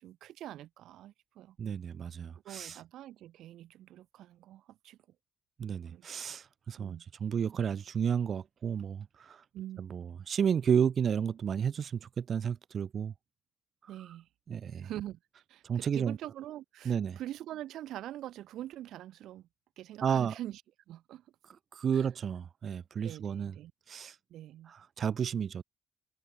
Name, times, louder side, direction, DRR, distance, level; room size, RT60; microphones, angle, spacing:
voice 1, 0.0-1.6 2.4-5.0 5.9-6.2 6.8-7.0 9.5-9.9 13.9-14.3 14.8-15.2 15.5-19.5 19.8-20.6 20.9-21.2 21.9-22.1 23.0-23.7 24.3-24.7, right 13 dB, 80° right, 4.1 m, -44 dB
voice 2, 1.6-2.8 5.6-9.4 9.8-13.1 14.5-14.9 15.6-16.2 16.8-17.2 20.0-20.3 21.7-23.5 23.9-24.2 24.7-25.6, right 7 dB, 55° right, 0.7 m, -32 dB
cardioid pair, 90°, 0 cm